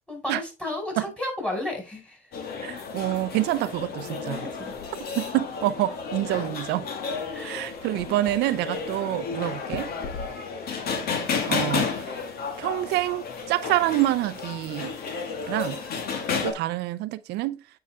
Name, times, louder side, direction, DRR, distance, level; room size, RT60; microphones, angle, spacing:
voice 1, 0.1-2.2 4.4-4.7 7.3-7.6, left 1 dB, 5° left, 4.9 m, -33 dB
sound 1, 2.3-16.5, left 5 dB, 65° left, 2.1 m, -32 dB
voice 2, 2.6-4.5 5.2-6.9 7.4-9.9 11.5-12.1 12.6-14.9 15.5-15.8 16.4-17.6, right 15 dB, 80° right, 0.5 m, -27 dB
8.6 x 5.6 x 3.5 m
cardioid pair, 110°, 17 cm